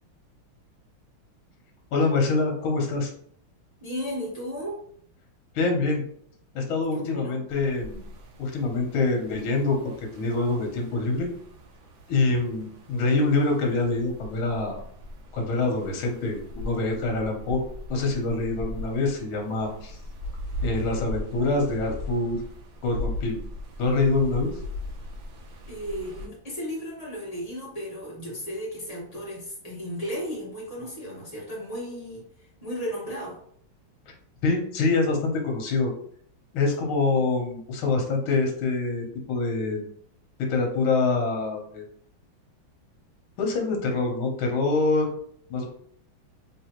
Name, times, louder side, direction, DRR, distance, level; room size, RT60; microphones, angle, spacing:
voice 1, 1.9-3.1 5.5-6.0 6.5-8.0 8.4-11.3 12.1-14.8 15.3-17.6 17.9-20.0 20.6-22.4 22.8-23.4 23.8-24.5 34.4-35.9 36.5-39.8 40.4-41.8 43.4-45.1 45.5-45.7, left 3 dB, 85° left, 2 dB, 1.7 m, -25 dB
voice 2, 3.8-4.8 6.9-7.4 25.7-33.4 37.1-37.2, equal, 20° left, -5 dB, 1.2 m, -35 dB
sound 1, 7.5-26.3, left 1 dB, 65° right, 1.2 m, -39 dB
3.6 x 3.3 x 2.9 m, 0.63 s
omnidirectional pair, 2.2 m